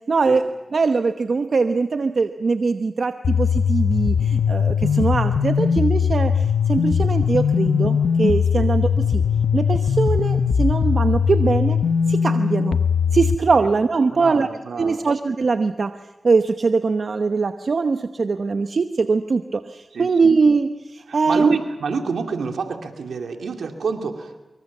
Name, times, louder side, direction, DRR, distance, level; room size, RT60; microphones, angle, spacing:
voice 1, 0.1-0.4 0.7-9.2 9.5-11.8 12.1-12.8 13.1-14.5 14.8-16.0 16.2-21.6, right 4 dB, 70° right, 8 dB, 0.9 m, -21 dB
sound 1, 3.2-13.4, left 6 dB, 90° left, 1.0 m, -20 dB
voice 2, 14.1-15.0 19.9-20.3 21.1-24.4, right 5 dB, 90° right, 4 dB, 2.5 m, -28 dB
24.5 x 23.5 x 7.3 m, 1.1 s
cardioid pair, 40°, 0 cm